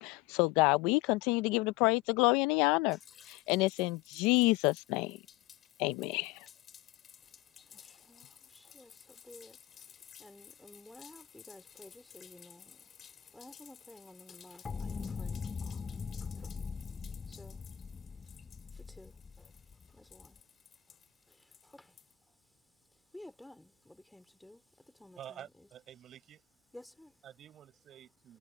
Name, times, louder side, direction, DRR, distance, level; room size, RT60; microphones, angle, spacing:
voice 1, 0.0-3.0 3.3-5.2 5.8-6.4, left 22 dB, 75° left, 0.5 m, -28 dB
sound 1, 2.9-22.1, left 8 dB, 40° left, 5.9 m, -57 dB
voice 2, 7.2-16.7 17.0-25.7 26.7-27.2, left 1 dB, 5° left, 3.0 m, -56 dB
sound 2, 14.6-20.3, left 5 dB, 25° left, 1.1 m, -41 dB
voice 3, 25.2-26.5 27.2-28.4, right 10 dB, 50° right, 6.2 m, -50 dB
supercardioid pair, 95°, 0 cm